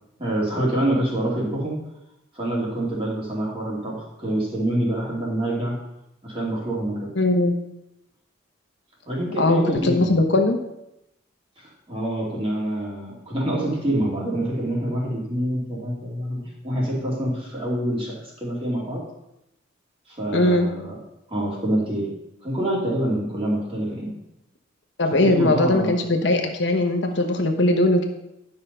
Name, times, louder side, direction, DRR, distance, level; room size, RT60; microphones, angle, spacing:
voice 1, 0.2-1.8 2.3-5.8 6.2-7.1 9.1-10.2 11.6-19.0 20.1-20.9 21.3-22.1 22.4-24.1 25.2-25.9, right 1 dB, 30° right, -4 dB, 2.8 m, -26 dB
voice 2, 7.2-7.6 9.4-10.6 20.3-20.7 25.0-28.1, left 2 dB, 60° left, 4 dB, 1.0 m, -20 dB
11.0 x 5.7 x 5.4 m, 0.86 s
head